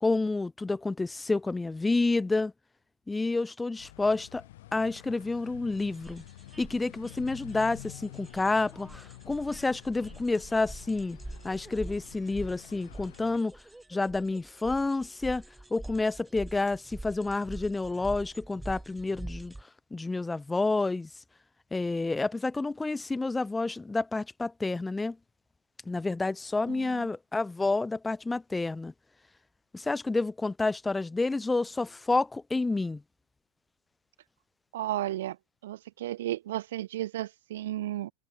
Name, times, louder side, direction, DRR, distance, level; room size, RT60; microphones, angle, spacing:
voice 1, 0.0-2.5 3.1-4.4 4.7-6.2 6.6-11.2 11.4-13.5 13.9-15.4 15.7-19.5 19.9-21.1 21.7-25.2 25.9-28.9 29.7-33.0, left 3 dB, 10° left, 0.5 m, -29 dB
sound 1, 3.8-13.4, left 16 dB, 65° left, 4.5 m, -49 dB
sound 2, 5.8-19.6, right 2 dB, 5° right, 3.4 m, -45 dB
voice 2, 26.7-27.1 34.7-35.4 35.6-38.1, right 14 dB, 65° right, 3.4 m, -33 dB
figure-of-eight pair, 85°, 0 cm